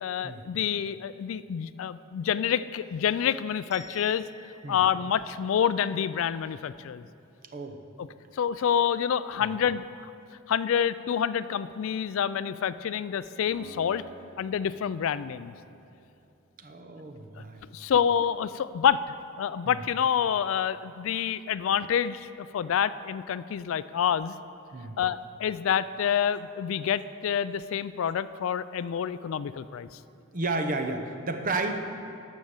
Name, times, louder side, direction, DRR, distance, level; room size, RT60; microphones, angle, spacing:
voice 1, 0.0-4.2 4.7-7.0 8.0-8.1 8.3-10.1 10.5-14.0 14.4-15.5 17.4-17.5 17.7-19.0 19.4-24.3 25.0-29.9, left 8 dB, 70° left, 15 dB, 0.3 m, -27 dB
sound 1, 3.7-6.5, left 2 dB, 5° right, 2.0 m, -53 dB
Acoustic guitar, 13.5-16.7, right 2 dB, 80° right, 3.0 m, -52 dB
voice 2, 16.6-17.7 19.6-19.8 24.7-25.0 30.3-31.7, right 2 dB, 40° right, 6 dB, 0.8 m, -32 dB
12.0 x 6.3 x 7.1 m, 2.6 s
head